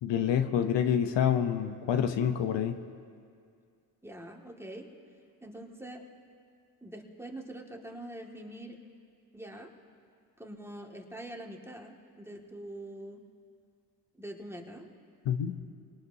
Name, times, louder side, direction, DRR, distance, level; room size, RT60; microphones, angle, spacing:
voice 1, 0.0-2.8 15.3-15.5, left 9 dB, 75° left, 7 dB, 0.9 m, -27 dB
voice 2, 4.0-4.9 5.4-6.0 6.8-8.8 9.3-9.7 10.4-13.2 14.1-14.9, right 1 dB, 5° right, 0 dB, 2.0 m, -44 dB
23.0 x 18.5 x 2.8 m, 2.2 s
supercardioid pair, 50°, 44 cm